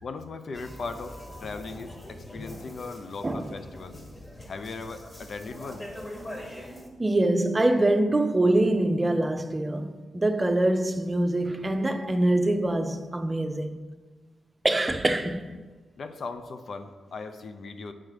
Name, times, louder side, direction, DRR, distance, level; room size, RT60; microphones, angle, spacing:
voice 1, 0.0-4.0 4.5-5.8 16.0-17.9, left 4 dB, 60° left, 0.5 m, -38 dB
sound 1, 0.5-6.9, left 1 dB, 25° left, 1.6 m, -43 dB
voice 2, 3.2-3.6 7.0-13.8 14.6-15.5, right 1 dB, 25° right, 0.6 m, -24 dB
7.6 x 4.6 x 4.8 m
hypercardioid pair, 40°, 0 cm